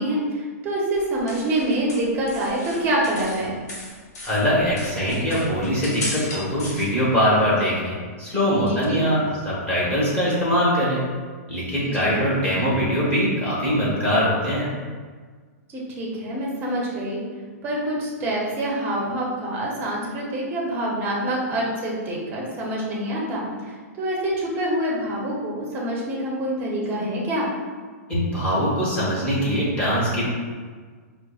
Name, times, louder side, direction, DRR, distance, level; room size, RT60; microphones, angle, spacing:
voice 1, 0.0-3.5 8.6-9.0 12.0-12.3 15.7-17.2 17.6-27.5, right 1 dB, 25° right, -4 dB, 0.8 m, -26 dB
sound 1, 0.9-3.4 3.7-6.8, left 2 dB, 80° left, 1.1 m, -35 dB
voice 2, 4.2-11.0 11.5-14.7 28.1-30.3, equal, 15° left, -8 dB, 1.2 m, -22 dB
4.6 x 2.2 x 2.4 m, 1.5 s
hypercardioid pair, 145°, 9 cm